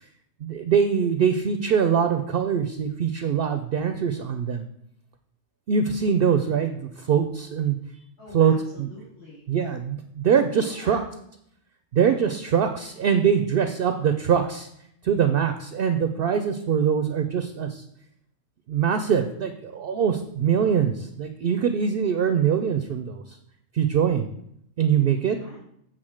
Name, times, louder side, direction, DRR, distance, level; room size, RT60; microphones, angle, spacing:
voice 1, 0.4-4.7 5.7-7.8 8.3-8.9 9.5-11.0 11.9-14.7 15.0-17.8 18.7-23.4 23.7-24.3 24.8-25.4, right 7 dB, 60° right, 8 dB, 0.7 m, -23 dB
voice 2, 8.2-9.4 10.5-11.0 25.4-25.6, left 1 dB, 60° left, -10 dB, 3.1 m, -44 dB
7.6 x 3.9 x 6.4 m, 0.73 s
omnidirectional pair, 1.3 m